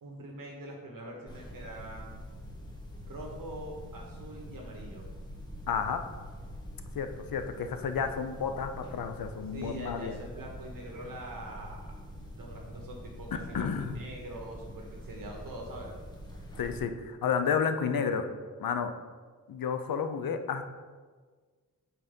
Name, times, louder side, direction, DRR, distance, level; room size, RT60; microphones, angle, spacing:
voice 1, 0.0-2.2 3.0-5.1 9.5-11.9 12.3-15.9, right 1 dB, 70° right, -1 dB, 1.2 m, -43 dB
sound 1, 1.3-16.8, equal, 10° left, 1.3 m, -45 dB
voice 2, 5.7-6.0 6.9-10.2 13.5-14.0 16.6-18.3 18.6-18.9 19.5-20.6, left 6 dB, 80° left, 8 dB, 0.7 m, -31 dB
5.8 x 4.1 x 5.2 m, 1.5 s
wide cardioid pair, 80°, 34 cm